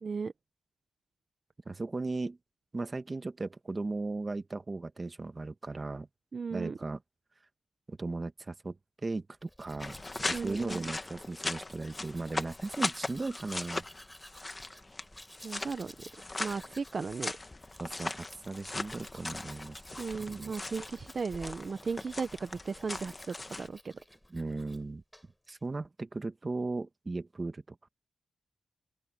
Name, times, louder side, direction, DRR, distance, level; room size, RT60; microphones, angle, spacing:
voice 1, 0.0-0.3 6.3-6.8 10.3-10.8 15.4-15.9 16.4-17.3 20.0-23.9, right 5 dB, 45° right, 0.8 m, -36 dB
voice 2, 1.6-2.4 2.7-6.1 6.5-7.0 7.9-9.9 10.3-13.8 17.8-19.8 20.2-20.5 24.3-25.0 25.5-27.9, right 3 dB, 30° right, 1.5 m, -37 dB
Domestic sounds home sounds, 9.4-24.9 25.1-25.6, equal, 5° left, 7.6 m, -54 dB
sound 1, 9.8-23.7, left 2 dB, 25° left, 1.3 m, -39 dB
open air
cardioid pair, 95°, 0 cm